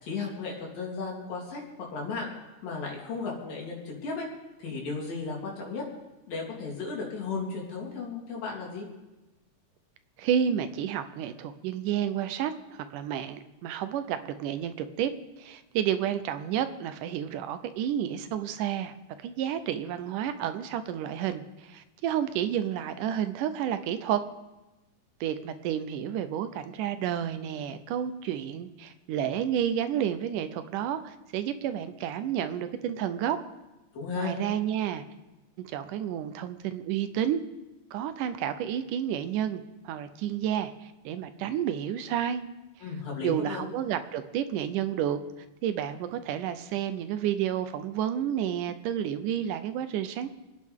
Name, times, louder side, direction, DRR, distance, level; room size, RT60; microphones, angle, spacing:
voice 1, 0.0-2.3 2.6-4.3 4.6-5.8 6.3-8.9 33.9-34.3 42.8-43.7, left 4 dB, 85° left, -3 dB, 5.0 m, -35 dB
voice 2, 10.2-15.1 15.4-19.0 19.2-24.3 25.2-33.4 34.2-35.0 35.6-37.4 37.9-42.4 43.2-45.2 45.6-50.4, right 10 dB, 80° right, 11 dB, 2.2 m, -30 dB
29.0 x 9.7 x 3.6 m, 1.0 s
omnidirectional pair, 3.9 m